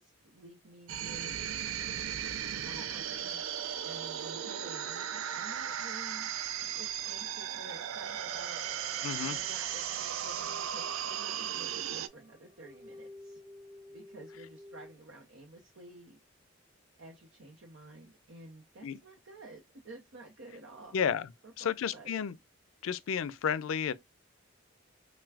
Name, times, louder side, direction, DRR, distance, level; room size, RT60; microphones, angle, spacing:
voice 1, 0.0-1.4 2.6-3.6 3.8-6.3 6.6-8.9 9.2-13.4 13.9-16.2 17.0-21.0 21.4-22.1, right 2 dB, 70° right, 0.8 m, -51 dB
sound 1, 0.9-12.1, right 9 dB, 90° right, 0.4 m, -36 dB
sound 2, 3.1-14.9, right 1 dB, 10° right, 1.5 m, -55 dB
voice 2, 9.0-9.4 18.8-19.0 20.9-21.3 21.6-22.4 22.8-23.9, left 7 dB, 85° left, 0.4 m, -32 dB
5.7 x 2.2 x 2.3 m
head